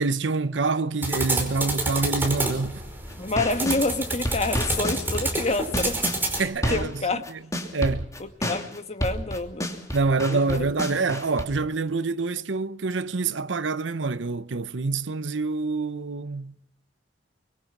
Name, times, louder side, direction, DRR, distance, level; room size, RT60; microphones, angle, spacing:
voice 1, 0.0-2.8 6.4-7.0 7.3-7.4 7.7-8.1 9.9-16.5, right 3 dB, 85° right, 0.8 m, -26 dB
sound 1, 1.0-6.4, right 2 dB, 10° right, 4.9 m, -28 dB
sound 2, 3.1-3.8 4.2-7.0 7.2-11.4, equal, 20° left, 2.9 m, -29 dB
voice 2, 3.2-6.0 6.3-6.4 6.7-7.2 8.4-9.7 10.3-10.6, left 3 dB, 35° left, 1.4 m, -27 dB
24.0 x 22.0 x 6.0 m
head